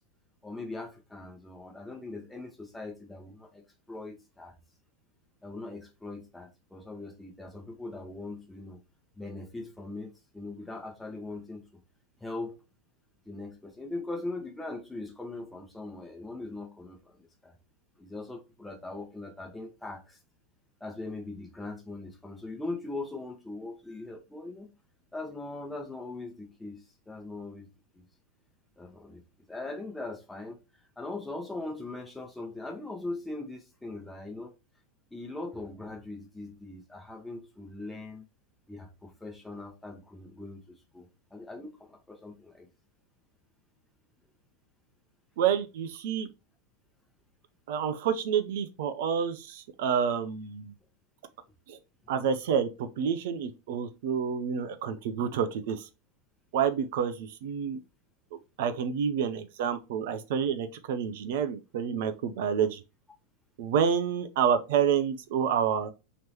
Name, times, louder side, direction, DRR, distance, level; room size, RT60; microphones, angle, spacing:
voice 1, 0.4-3.6 3.9-4.5 5.4-8.8 9.2-11.7 12.2-12.5 13.3-17.5 18.0-20.2 20.8-24.7 25.1-27.7 27.9-28.0 28.8-29.2 29.5-30.6 31.0-34.5 35.1-38.3 38.7-42.7, left 2 dB, 5° left, 1.0 m, -40 dB
voice 2, 45.4-46.3 47.7-50.7 51.7-51.8 52.1-55.9 56.5-57.8 58.6-62.8 63.6-65.9, right 7 dB, 50° right, 0.5 m, -28 dB
3.1 x 3.0 x 4.1 m
figure-of-eight pair, 90°, 0 cm